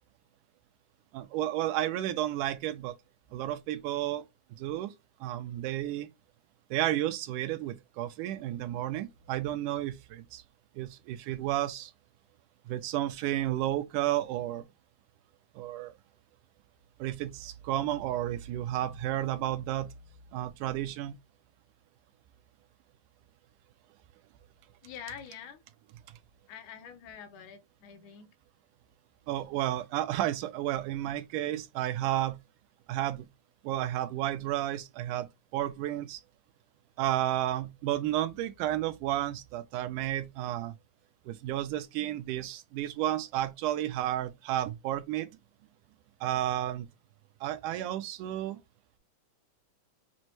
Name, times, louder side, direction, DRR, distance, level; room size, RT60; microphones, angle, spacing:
voice 1, 1.1-3.0 3.3-4.2 4.6-4.9 5.2-6.1 6.7-10.4 10.8-11.9 12.7-14.7 15.6-15.9 17.0-19.9 20.3-21.2 29.3-32.4 32.9-33.3 33.6-36.2 37.0-40.7 41.3-45.3 46.2-46.9 47.4-48.6, right 13 dB, 85° right, 2.1 m, -32 dB
voice 2, 24.8-25.6 26.5-28.3, left 8 dB, 75° left, 2.2 m, -46 dB
6.2 x 2.1 x 3.0 m
omnidirectional pair, 3.7 m